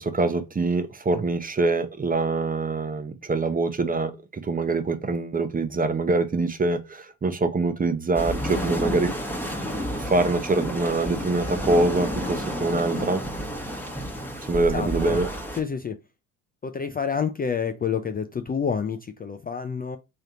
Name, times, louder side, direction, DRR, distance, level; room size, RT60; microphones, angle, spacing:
voice 1, 0.0-9.1 10.0-13.2 14.5-15.3, right 3 dB, 20° right, 0.7 m, -24 dB
sound 1, 8.1-15.6, equal, 5° left, 1.2 m, -30 dB
voice 2, 14.7-15.2 15.6-16.0 16.6-20.0, left 6 dB, 25° left, 0.4 m, -28 dB
3.3 x 2.8 x 3.9 m
hypercardioid pair, 60°, 41 cm